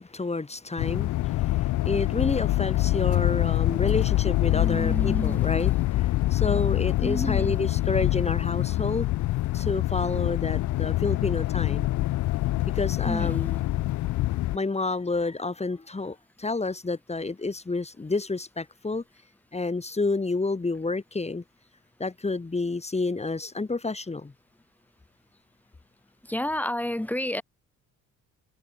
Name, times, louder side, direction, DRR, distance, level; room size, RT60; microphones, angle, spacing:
voice 1, 0.0-9.1 9.5-11.9 12.7-13.6 14.5-19.0 19.5-21.4 22.0-24.3, left 3 dB, 20° left, 3.5 m, -29 dB
sound 1, 0.8-14.6, left 16 dB, 75° left, 0.6 m, -25 dB
voice 2, 4.5-5.7 6.5-6.7 7.0-7.5 13.0-13.4 26.3-27.4, left 1 dB, 5° left, 1.1 m, -30 dB
cardioid pair, 90°, 30 cm